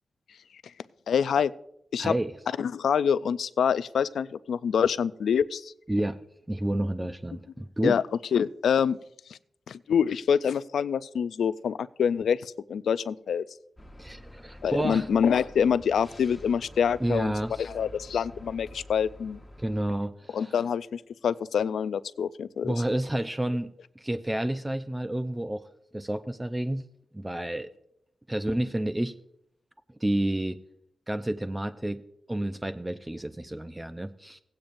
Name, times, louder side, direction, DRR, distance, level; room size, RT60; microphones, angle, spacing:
voice 1, 1.1-1.5 1.9-2.1 2.6-5.7 7.8-8.0 8.3-9.0 9.7-13.4 14.6-17.3 17.6-19.4 20.3-22.7, left 7 dB, 85° left, 16 dB, 0.3 m, -26 dB
voice 2, 2.0-2.3 5.9-6.2 6.5-8.0 14.0-15.1 17.0-17.7 19.6-20.5 22.6-25.7 25.9-26.8 27.1-27.7 28.3-29.1 30.0-30.6 31.1-32.0 32.3-34.4, right 1 dB, 15° right, 9 dB, 0.5 m, -30 dB
sound 1, 13.8-19.9, left 1 dB, 15° left, 1.1 m, -48 dB
16.5 x 8.7 x 2.6 m, 0.74 s
cardioid pair, 55°, 0 cm